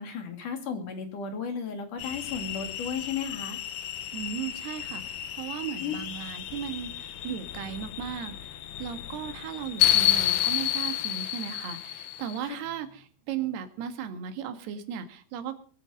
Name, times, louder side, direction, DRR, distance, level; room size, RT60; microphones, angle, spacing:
voice 1, 0.0-3.6 5.8-5.9 12.4-12.6, left 6 dB, 50° left, 6 dB, 3.9 m, -34 dB
sound 1, 2.0-12.4, left 13 dB, 70° left, 2.7 m, -30 dB
voice 2, 4.1-15.6, right 9 dB, 70° right, 9 dB, 3.6 m, -36 dB
22.0 x 9.0 x 6.4 m, 0.44 s
omnidirectional pair, 5.0 m